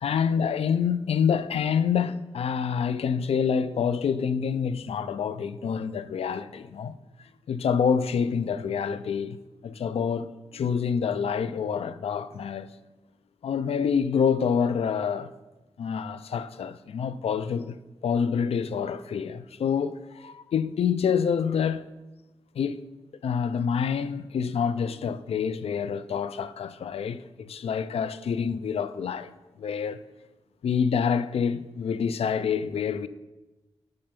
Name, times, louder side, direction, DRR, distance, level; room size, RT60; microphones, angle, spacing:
voice 1, 0.0-7.0 7.5-9.4 9.6-12.7 13.4-15.3 15.8-17.8 18.0-21.9 22.5-22.8 23.2-29.3 29.6-30.0 30.6-33.1, left 7 dB, 75° left, 0.4 m, -27 dB
7.7 x 5.6 x 5.2 m
cardioid pair, 65°, 10 cm